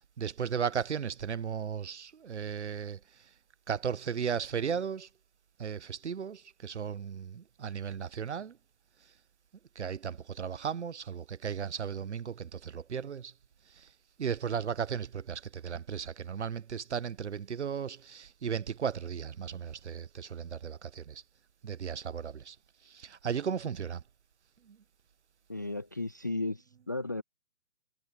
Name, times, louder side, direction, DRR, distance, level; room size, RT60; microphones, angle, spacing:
voice 1, 0.0-3.0 3.7-5.1 5.6-8.6 9.7-13.3 13.8-13.9 14.2-21.2 21.6-22.6 22.8-24.0 24.7-24.8, right 7 dB, 50° right, 1.2 m, -35 dB
voice 2, 25.5-27.2, left 2 dB, 15° left, 0.5 m, -34 dB
figure-of-eight pair, 140°, 45 cm